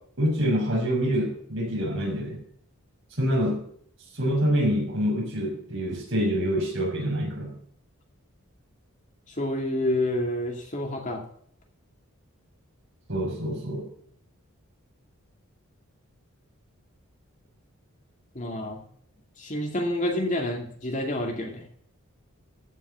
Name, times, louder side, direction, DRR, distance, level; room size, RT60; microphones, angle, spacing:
voice 1, 0.2-2.4 3.2-3.6 4.1-7.5 13.1-13.9, equal, 55° right, -1 dB, 5.7 m, -26 dB
voice 2, 9.4-11.2 18.3-18.8 19.4-21.6, left 1 dB, 35° left, 2 dB, 2.3 m, -28 dB
14.5 x 6.3 x 5.6 m, 0.62 s
head